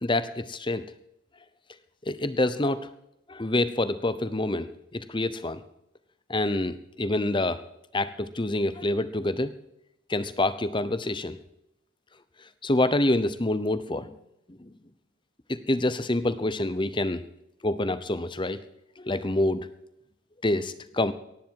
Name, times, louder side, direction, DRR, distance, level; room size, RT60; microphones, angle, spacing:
voice 1, 0.0-0.8 2.1-2.8 3.3-4.7 4.9-5.6 6.3-7.6 7.9-9.5 10.1-11.4 12.6-14.1 14.6-14.7 15.5-17.2 17.6-18.6 19.0-19.7 20.4-21.1, left 1 dB, 20° left, 13 dB, 0.8 m, -26 dB
18.0 x 15.0 x 4.7 m, 0.81 s
head